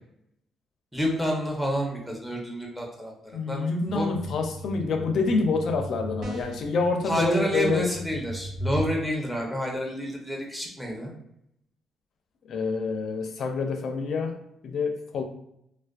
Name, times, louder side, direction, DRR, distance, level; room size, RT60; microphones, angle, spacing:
voice 1, 0.9-3.1 3.5-3.6 3.9-4.1 7.1-11.1, equal, ahead, -1 dB, 0.7 m, -29 dB
voice 2, 3.3-7.9 12.4-14.4 14.6-15.2, left 3 dB, 65° left, 4 dB, 0.4 m, -27 dB
sound 1, 3.9-8.9, equal, 85° right, 1.1 m, -37 dB
sound 2, 6.2-6.8, right 2 dB, 60° right, 0.6 m, -40 dB
2.4 x 2.2 x 2.3 m, 0.77 s
cardioid pair, 90°, 0 cm